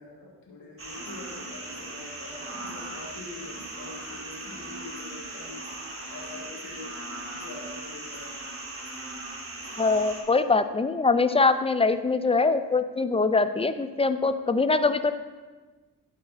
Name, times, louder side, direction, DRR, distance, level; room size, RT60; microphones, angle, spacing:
voice 1, 0.0-5.8 6.1-6.9 7.3-8.5, left 3 dB, 55° left, -4 dB, 1.9 m, -44 dB
sound 1, 0.8-10.2, right 2 dB, 30° right, 1.9 m, -39 dB
voice 2, 9.8-15.1, left 3 dB, 15° left, 11 dB, 0.4 m, -23 dB
11.5 x 4.2 x 4.1 m, 1.3 s
cardioid pair, 50°, 41 cm